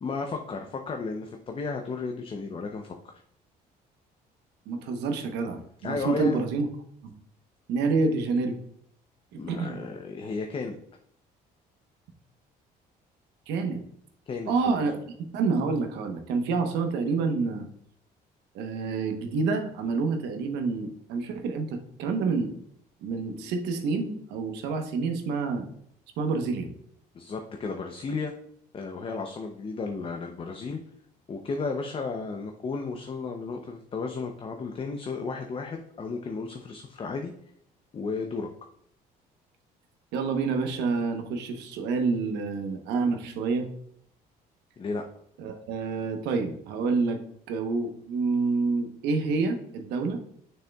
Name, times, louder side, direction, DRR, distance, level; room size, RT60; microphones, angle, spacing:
voice 1, 0.0-3.1 5.8-6.4 9.4-10.8 14.3-14.7 27.1-28.3 28.7-30.8 31.3-37.3 37.9-38.5 44.8-45.0, left 4 dB, 30° left, 4 dB, 0.6 m, -33 dB
voice 2, 4.7-6.7 7.0-7.1 7.7-8.6 9.5-9.8 13.5-13.8 14.5-17.7 18.5-22.5 23.0-25.6 26.2-26.7 40.1-43.7 45.4-47.2 47.5-50.2, right 4 dB, 90° right, 5 dB, 1.0 m, -28 dB
6.5 x 6.4 x 2.3 m, 0.69 s
cardioid pair, 110°, 17 cm